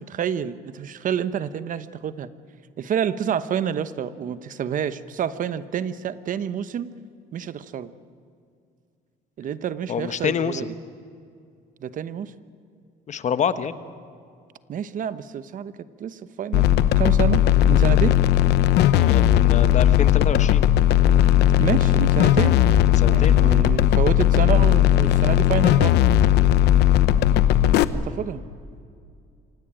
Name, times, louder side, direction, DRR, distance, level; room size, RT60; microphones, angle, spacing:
voice 1, 0.0-2.3 2.8-6.9 7.3-7.9 9.4-10.7 11.8-12.3 14.7-15.7 16.0-18.2 21.3-22.6 23.1-26.0 27.9-28.4, right 8 dB, 50° right, 13 dB, 1.0 m, -28 dB
voice 2, 9.9-10.7 13.1-13.8 19.0-20.6 23.0-23.5, left 7 dB, 45° left, 12 dB, 1.2 m, -27 dB
sound 1, 16.5-27.8, left 12 dB, 80° left, 0.9 m, -17 dB
25.5 x 17.5 x 8.9 m, 2.3 s
cardioid pair, 110°, 17 cm